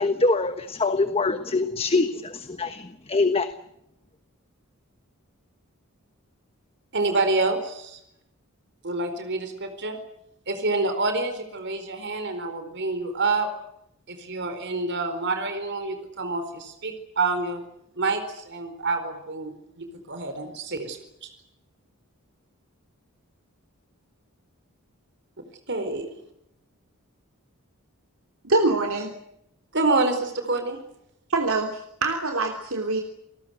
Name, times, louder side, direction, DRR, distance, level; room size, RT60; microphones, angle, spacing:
voice 1, 0.0-3.5, left 3 dB, 25° left, 9 dB, 1.2 m, -24 dB
voice 2, 6.9-8.0 8.8-10.0 10.5-13.5 14.1-17.6 17.9-21.3 25.7-26.1 29.7-30.8, right 3 dB, 55° right, 7 dB, 4.4 m, -27 dB
voice 3, 28.4-29.2 31.3-33.0, right 2 dB, 70° right, 4 dB, 3.3 m, -24 dB
29.5 x 19.5 x 8.1 m, 0.79 s
head